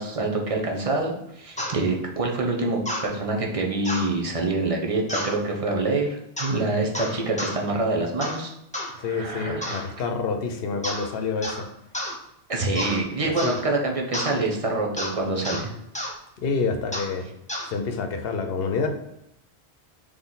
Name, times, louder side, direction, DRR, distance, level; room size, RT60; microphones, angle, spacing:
voice 1, 0.0-8.5 8.9-9.8 12.5-15.7, right 2 dB, 35° right, 0 dB, 0.7 m, -26 dB
sound 1, 1.6-1.8 2.9-3.1 3.8-4.1 5.1-5.4 6.4-6.6 6.9-7.6 8.2-8.4 8.7-8.9 9.6-9.9 10.8-11.1 11.4-11.6 11.9-12.2 12.8-13.0 13.4-13.6 14.1-14.3 15.0-15.1 15.4-15.6 15.9-16.1 16.9-17.1 17.5-17.7, left 1 dB, 10° left, 0.6 m, -30 dB
voice 2, 9.0-11.7 12.7-13.6 16.4-17.2 17.6-18.9, left 4 dB, 65° left, 6 dB, 0.9 m, -28 dB
4.2 x 3.1 x 3.9 m, 0.83 s
omnidirectional pair, 1.1 m